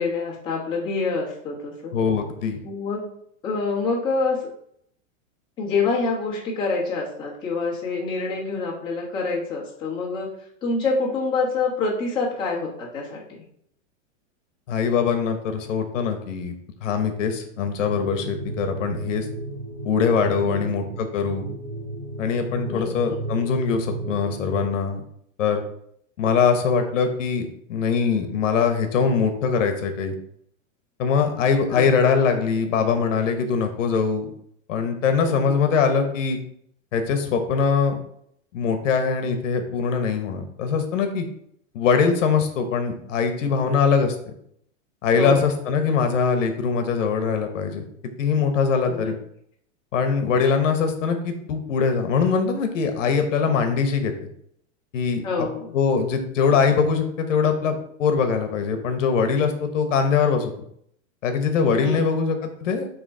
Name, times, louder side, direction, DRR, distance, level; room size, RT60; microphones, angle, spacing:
voice 1, 0.0-1.9 2.6-3.1 3.4-4.4 5.6-10.3 10.6-13.2 20.4-20.7 22.7-23.2 31.7-31.9 35.3-35.6 45.1-45.4 48.9-49.1 55.2-55.7 61.8-62.2, left 4 dB, 10° left, -7 dB, 1.3 m, -26 dB
voice 2, 1.9-2.6 14.7-16.5 16.8-19.3 19.8-21.4 22.2-25.0 25.4-25.6 26.2-30.2 31.0-34.3 34.7-36.4 36.9-38.0 38.5-41.2 41.7-44.1 45.0-47.9 48.2-49.2 49.9-54.1 54.9-55.5 55.7-60.5 61.2-62.9, left 5 dB, 70° left, 6 dB, 1.1 m, -22 dB
sound 1, 17.8-24.6, right 2 dB, 10° right, 0.3 m, -34 dB
6.2 x 3.1 x 5.3 m, 0.69 s
supercardioid pair, 180°, 39 cm